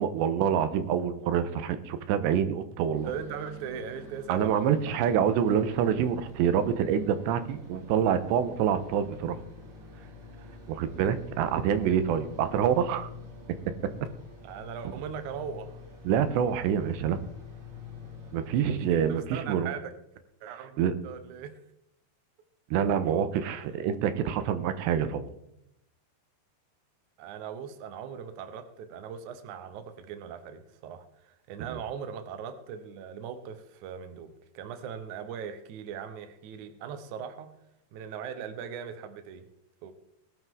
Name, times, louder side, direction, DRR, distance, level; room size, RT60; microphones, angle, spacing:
voice 1, 0.0-3.1 4.3-9.4 10.7-13.1 16.0-17.2 18.3-19.7 20.8-20.9 22.7-25.3, right 8 dB, 90° right, 10 dB, 3.2 m, -26 dB
sound 1, 2.9-19.2, left 2 dB, 50° right, 6.7 m, -46 dB
voice 2, 3.0-5.0 10.4-10.5 14.4-15.8 18.9-19.9 20.4-21.5 27.2-37.5 37.9-39.5 39.8-39.9, right 7 dB, 70° right, 8 dB, 1.9 m, -39 dB
20.5 x 11.0 x 3.8 m, 0.80 s
omnidirectional pair, 5.0 m